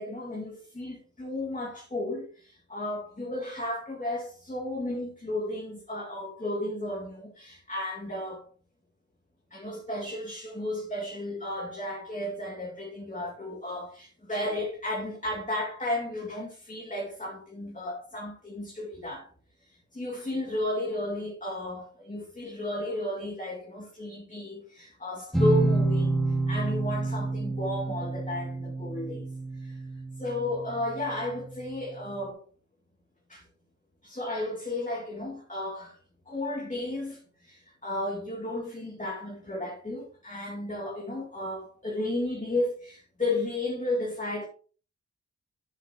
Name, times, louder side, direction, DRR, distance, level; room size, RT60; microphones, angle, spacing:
voice 1, 0.0-8.5 9.5-19.3 19.7-29.3 29.6-29.8 30.2-32.4 33.3-33.4 34.0-36.0 36.3-44.5, left 1 dB, 25° left, 2.4 m, -33 dB
sound 1, 25.3-30.9, right 2 dB, ahead, 2.3 m, -28 dB
10.5 x 7.3 x 3.0 m
wide cardioid pair, 105°, 31 cm